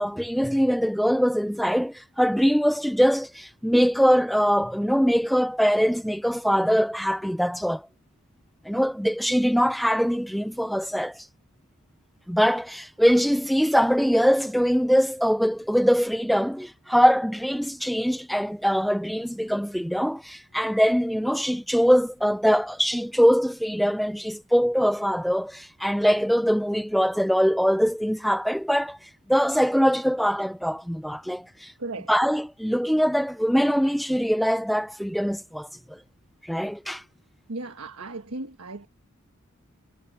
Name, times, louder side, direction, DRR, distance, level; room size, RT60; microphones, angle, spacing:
voice 1, 0.0-7.9 8.6-11.3 12.3-31.7 32.1-36.0 36.4-37.0, equal, ahead, 0.7 m, -23 dB
voice 2, 31.8-32.1 37.5-38.9, right 2 dB, 70° right, 1.4 m, -35 dB
head